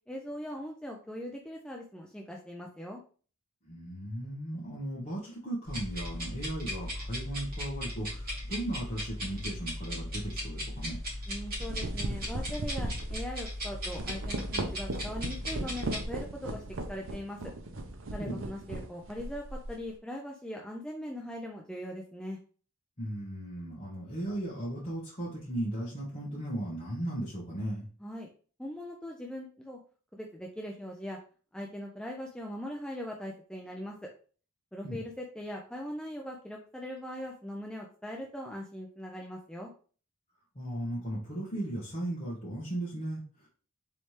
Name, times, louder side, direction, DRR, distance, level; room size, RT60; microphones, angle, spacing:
voice 1, 0.1-3.0 11.3-16.6 16.9-17.4 18.1-22.4 28.0-28.3 28.6-29.8 30.1-31.2 31.5-33.9 34.7-39.7, equal, 5° left, 0 dB, 0.4 m, -40 dB
voice 2, 3.7-11.0 18.2-18.4 23.0-27.9 34.8-35.0 40.5-43.5, right 1 dB, 30° left, -8 dB, 1.1 m, -36 dB
sound 1, 5.7-16.1, equal, 45° right, 2.0 m, -37 dB
sound 2, 10.7-10.9 11.4-19.8, right 2 dB, 60° right, 0.7 m, -38 dB
4.2 x 3.2 x 3.1 m, 0.40 s
head